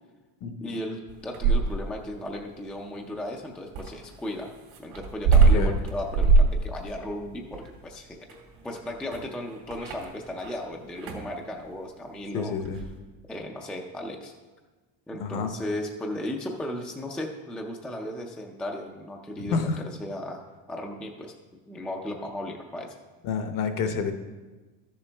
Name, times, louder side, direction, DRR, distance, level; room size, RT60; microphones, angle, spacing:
voice 1, 0.6-4.5 4.8-8.2 8.6-12.5 13.3-14.3 15.1-20.4 20.7-21.3 21.7-22.9, left 1 dB, 5° left, 1 dB, 0.4 m, -35 dB
sound 1, 1.1-2.0 3.7-10.6 10.9-11.3 12.6-12.9, right 4 dB, 85° right, 2.5 m, -23 dB
voice 2, 12.3-12.8 15.2-15.5 19.4-19.8 23.2-24.1, left 5 dB, 45° left, 7 dB, 0.8 m, -28 dB
13.0 x 6.9 x 3.4 m, 1.3 s
cardioid pair, 160°, 44 cm